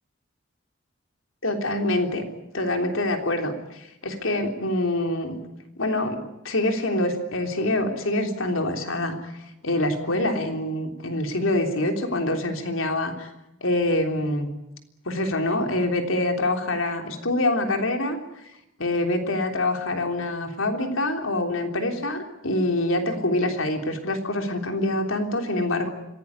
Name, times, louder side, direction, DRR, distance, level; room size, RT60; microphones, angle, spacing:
voice 1, 1.4-2.2 2.5-5.4 5.8-9.3 9.6-13.3 13.6-14.5 15.0-18.2 18.8-25.9, left 1 dB, 85° left, 4 dB, 3.4 m, -25 dB
26.0 x 17.5 x 9.7 m, 0.90 s
head